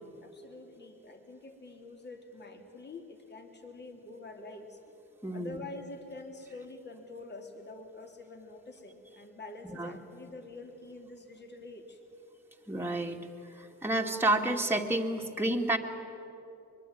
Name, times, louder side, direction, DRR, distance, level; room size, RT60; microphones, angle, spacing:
voice 1, 0.2-4.8 5.3-12.0, left 2 dB, 35° left, 4 dB, 3.4 m, -46 dB
voice 2, 5.2-5.6 9.8-9.9 12.7-13.2 13.6-15.8, right 1 dB, 5° right, 1 dB, 2.2 m, -29 dB
24.0 x 22.5 x 9.3 m, 2.8 s
cardioid pair, 90°, 30 cm